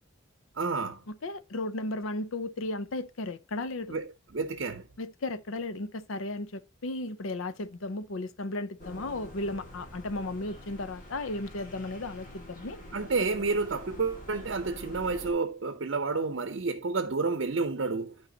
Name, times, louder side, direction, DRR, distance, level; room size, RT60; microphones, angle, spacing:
voice 1, 0.6-1.0 3.9-4.8 12.9-18.2, right 4 dB, 60° right, 0.6 m, -30 dB
voice 2, 1.1-3.9 5.0-12.8, left 2 dB, 75° left, 0.7 m, -35 dB
sound 1, 8.8-15.3, left 1 dB, 40° left, 2.2 m, -46 dB
12.0 x 4.7 x 2.8 m
head